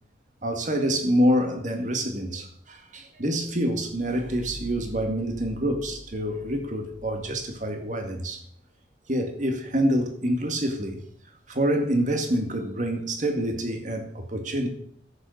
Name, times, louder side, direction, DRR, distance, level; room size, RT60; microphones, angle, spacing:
voice 1, 0.4-8.4 9.1-11.0 11.5-14.7, equal, 45° right, 2.1 m, -26 dB
sound 1, 3.6-8.2, equal, 55° left, 1.9 m, -45 dB
11.5 x 8.3 x 6.6 m
head